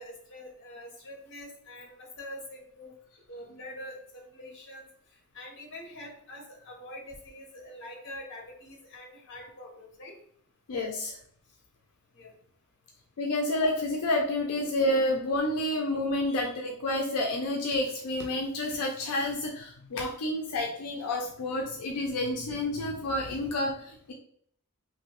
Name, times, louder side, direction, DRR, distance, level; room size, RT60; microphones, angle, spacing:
voice 1, 0.0-2.9 3.3-4.9 5.3-10.2 12.1-12.3, left 1 dB, 55° left, 0 dB, 0.9 m, -45 dB
voice 2, 10.7-11.1 13.2-24.1, left 1 dB, 85° left, 1 dB, 0.4 m, -29 dB
2.9 x 2.6 x 2.9 m, 0.63 s
head